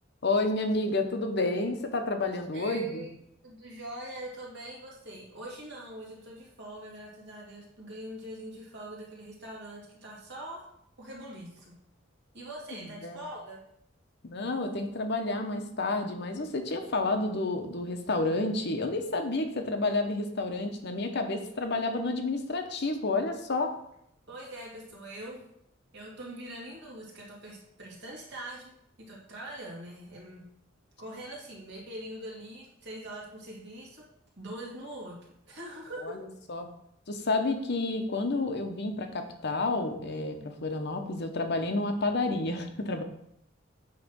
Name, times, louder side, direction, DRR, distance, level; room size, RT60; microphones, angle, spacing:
voice 1, 0.2-3.1 12.7-13.2 14.2-23.7 36.0-36.2 36.5-36.7 37.1-43.0, left 2 dB, 60° left, 5 dB, 1.0 m, -30 dB
voice 2, 2.5-3.1 3.4-10.6 11.0-11.6 12.3-13.6 24.3-25.4 25.9-28.7 29.1-30.4 31.0-34.0 34.4-35.2 35.4-36.2, right 1 dB, 60° right, -3 dB, 2.7 m, -43 dB
8.8 x 3.3 x 6.2 m, 0.75 s
head